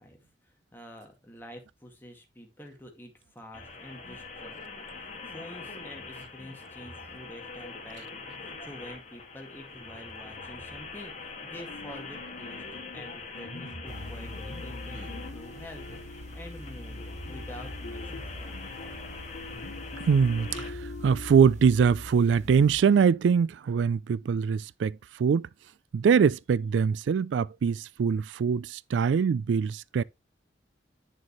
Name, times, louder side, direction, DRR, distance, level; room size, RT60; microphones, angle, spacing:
voice 1, 0.0-18.6, left 1 dB, 10° left, 2.0 m, -47 dB
sound 1, 3.5-20.7, left 3 dB, 40° left, 1.9 m, -43 dB
sound 2, 11.7-21.5, left 3 dB, 70° left, 0.7 m, -46 dB
sound 3, 13.9-22.8, left 1 dB, 40° right, 1.2 m, -43 dB
voice 2, 20.0-25.5 25.9-30.0, right 6 dB, 85° right, 0.3 m, -23 dB
8.9 x 6.4 x 3.0 m
head